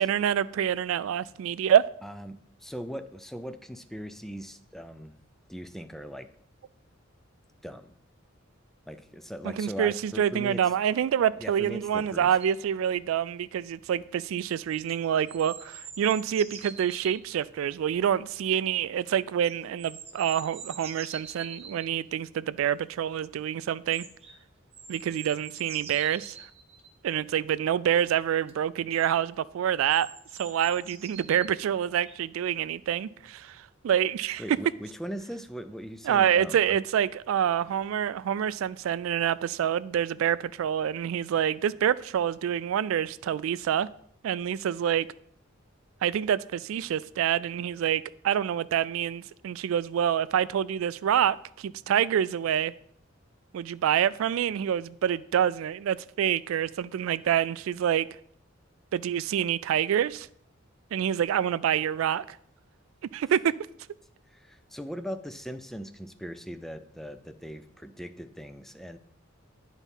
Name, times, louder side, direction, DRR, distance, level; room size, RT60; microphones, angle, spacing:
voice 1, 0.0-1.8 9.6-24.1 24.9-26.4 27.0-30.1 30.4-34.4 36.1-43.9 44.2-45.1 46.0-52.7 53.5-58.1 58.9-60.3 60.9-62.4 63.1-63.5, right 9 dB, 80° right, 0.3 m, -27 dB
voice 2, 2.0-5.1 5.5-6.3 7.6-7.9 8.9-10.6 11.4-12.3 34.4-36.8 64.3-69.0, equal, ahead, 0.4 m, -39 dB
sound 1, 12.4-12.5 14.5-17.2 19.4-21.9 23.9-24.4 24.7-26.9 28.5-28.6 28.9-29.1 29.9-31.5 32.1-32.2, right 6 dB, 30° right, 0.8 m, -45 dB
9.2 x 4.1 x 5.5 m
head